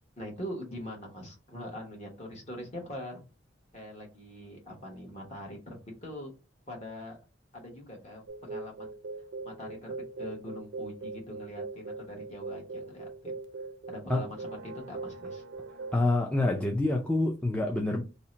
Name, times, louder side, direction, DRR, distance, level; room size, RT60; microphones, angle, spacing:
voice 1, 0.2-3.2 3.7-6.3 6.7-7.2 7.5-8.9 9.4-13.3 13.9-15.4, left 1 dB, 40° left, 1.1 m, -43 dB
sound 1, 8.3-16.0, right 3 dB, 90° right, 0.5 m, -41 dB
voice 2, 15.9-18.0, left 2 dB, 5° left, 0.4 m, -27 dB
2.7 x 2.1 x 3.8 m
head